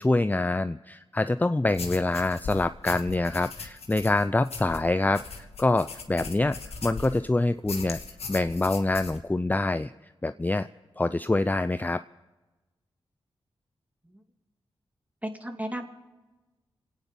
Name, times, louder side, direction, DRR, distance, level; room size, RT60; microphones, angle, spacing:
voice 1, 0.0-8.0 8.3-9.9 10.2-10.7 11.0-12.0, left 2 dB, 15° left, 12 dB, 0.4 m, -25 dB
sound 1, 1.7-7.3 7.7-9.2, left 4 dB, 75° left, 1.7 m, -39 dB
voice 2, 15.2-15.8, right 1 dB, 15° right, 4 dB, 2.5 m, -34 dB
27.0 x 9.4 x 5.4 m, 1.1 s
cardioid pair, 40°, 11 cm